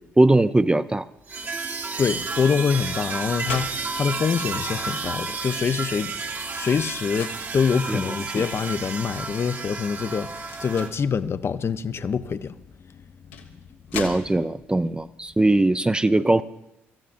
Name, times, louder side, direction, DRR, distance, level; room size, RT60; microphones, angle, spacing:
voice 1, 0.2-1.1 7.9-8.4 13.9-16.4, right 2 dB, 15° right, 0.5 m, -20 dB
sound 1, 1.3-10.9, right 4 dB, 30° right, 1.1 m, -31 dB
sound 2, 1.4-1.6 2.6-4.6 5.1-5.2 5.5-7.4 8.3-8.8 9.3-9.5 10.4-11.1 12.4-12.5 13.1-14.7, left 6 dB, 85° left, 1.3 m, -39 dB
voice 2, 2.0-12.5, left 6 dB, 40° left, 0.7 m, -25 dB
25.0 x 14.0 x 2.6 m
hypercardioid pair, 50°, 6 cm